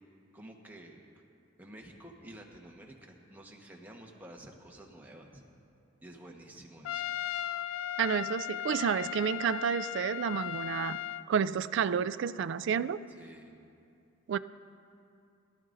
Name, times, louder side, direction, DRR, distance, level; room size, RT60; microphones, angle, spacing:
voice 1, 0.3-1.0 1.6-5.4 6.0-7.0 13.1-13.5, right 1 dB, 10° right, -1 dB, 1.2 m, -50 dB
Trumpet, 6.9-11.3, left 11 dB, 90° left, 0.3 m, -36 dB
voice 2, 8.0-11.0 11.3-13.0 14.3-14.4, right 7 dB, 65° right, 14 dB, 0.3 m, -30 dB
22.0 x 12.5 x 2.6 m, 2.6 s
head